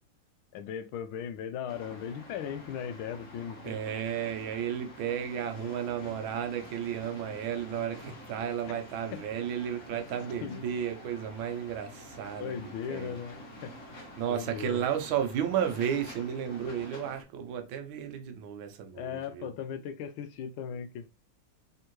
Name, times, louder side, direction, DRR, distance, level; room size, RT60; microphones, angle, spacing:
voice 1, 0.5-3.8 8.7-8.8 9.1-9.2 10.4-10.6 12.4-13.7 14.2-14.8 18.9-21.1, left 8 dB, 85° left, 1.5 m, -38 dB
sound 1, 1.7-17.2, left 1 dB, 45° left, 1.3 m, -48 dB
voice 2, 3.6-12.6 12.9-13.2 14.2-19.5, right 9 dB, 80° right, 1.5 m, -33 dB
3.6 x 3.5 x 2.9 m
omnidirectional pair, 2.2 m